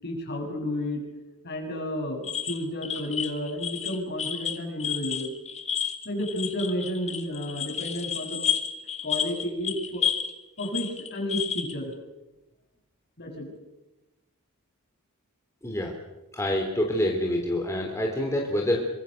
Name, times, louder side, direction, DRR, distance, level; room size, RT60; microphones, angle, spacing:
voice 1, 0.0-1.0 1.4-5.3 6.0-8.4 9.0-10.0 10.6-11.9 13.2-13.5, left 1 dB, 50° left, 2 dB, 7.7 m, -31 dB
sound 1, 2.2-10.3 10.6-11.7, left 8 dB, 30° left, 2.1 m, -31 dB
voice 2, 15.6-15.9 16.3-18.8, left 1 dB, 15° left, 0 dB, 3.8 m, -26 dB
26.5 x 25.5 x 6.9 m, 1.0 s
head